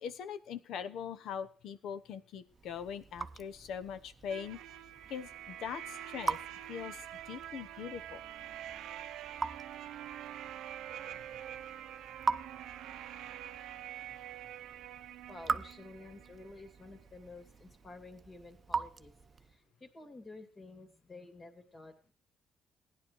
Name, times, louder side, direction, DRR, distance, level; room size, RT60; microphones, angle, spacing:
voice 1, 0.0-4.6 5.1-6.4 6.7-8.2, left 7 dB, 75° left, 13 dB, 0.9 m, -41 dB
Raindrop / Drip, 2.5-19.6, right 5 dB, 40° right, 0.6 m, -42 dB
sound 1, 4.3-17.0, right 11 dB, 80° right, 0.6 m, -46 dB
voice 2, 15.3-19.1 19.5-22.1, left 2 dB, 40° left, 5 dB, 2.7 m, -51 dB
16.0 x 10.5 x 4.7 m, 0.40 s
supercardioid pair, 65°, 0 cm